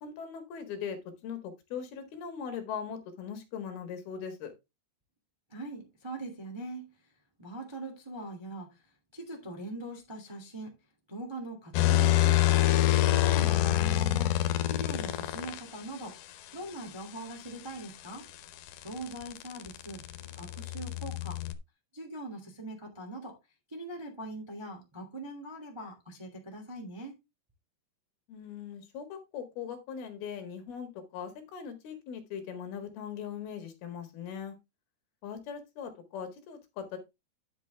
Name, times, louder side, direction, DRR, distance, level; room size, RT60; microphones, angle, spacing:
voice 1, 0.0-4.5 28.3-34.6 35.2-37.0, left 7 dB, 70° left, 3.6 m, -40 dB
voice 2, 5.5-6.9 7.4-8.8 9.1-10.7 11.1-12.6 13.1-16.2 16.5-18.3 18.8-20.0 20.4-21.4 21.9-23.4 23.7-27.1, right 2 dB, 10° right, 1.4 m, -42 dB
sound 1, 11.7-15.6 17.9-21.5, left 14 dB, 90° left, 3.0 m, -26 dB
10.5 x 6.6 x 3.4 m
omnidirectional pair, 4.7 m